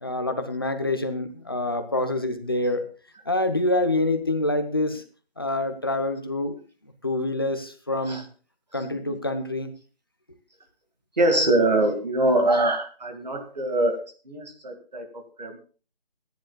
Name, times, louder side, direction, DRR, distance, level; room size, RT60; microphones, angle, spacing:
voice 1, 0.0-2.9 3.3-5.0 5.4-6.6 7.0-8.2 8.7-9.7, left 2 dB, 25° left, 7 dB, 0.8 m, -26 dB
voice 2, 8.7-9.2 11.2-15.6, right 1 dB, 45° right, 5 dB, 2.1 m, -24 dB
24.0 x 10.5 x 2.3 m, 0.37 s
figure-of-eight pair, 170°, 30 cm